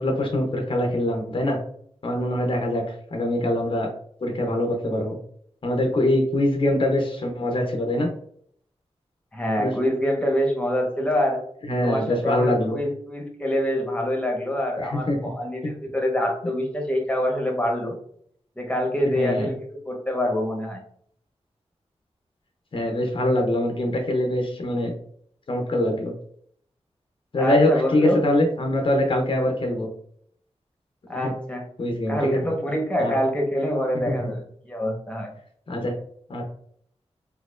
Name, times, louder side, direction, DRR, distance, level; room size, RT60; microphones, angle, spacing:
voice 1, 0.0-1.6 2.0-2.8 3.1-3.9 4.2-5.2 5.6-8.1 9.6-9.7 11.6-12.8 14.8-15.2 15.6-15.7 19.0-19.5 22.7-24.9 25.5-26.1 27.3-29.9 31.1-31.3 31.8-32.5 33.0-33.1 34.1-34.3 35.7-35.9 36.3-36.4, left 1 dB, 50° left, 2 dB, 0.7 m, -23 dB
voice 2, 9.3-11.4 11.8-18.0 18.6-20.8 27.4-28.2 31.1-31.6 32.1-35.3, equal, 10° left, 1 dB, 1.1 m, -25 dB
4.2 x 2.7 x 2.4 m, 0.64 s
wide cardioid pair, 75°, 11 cm